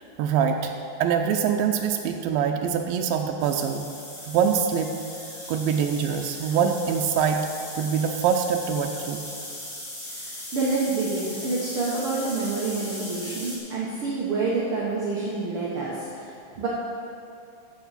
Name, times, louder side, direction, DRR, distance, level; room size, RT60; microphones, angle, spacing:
voice 1, 0.2-0.7 1.0-3.9 4.3-4.9 5.5-7.5 7.8-9.2, right 7 dB, 90° right, 3 dB, 2.3 m, -24 dB
sound 1, 3.4-13.6, left 1 dB, 30° left, 1.0 m, -38 dB
voice 2, 10.1-16.7, right 3 dB, 65° right, -6 dB, 1.4 m, -28 dB
12.5 x 7.7 x 4.1 m, 2.6 s
omnidirectional pair, 4.1 m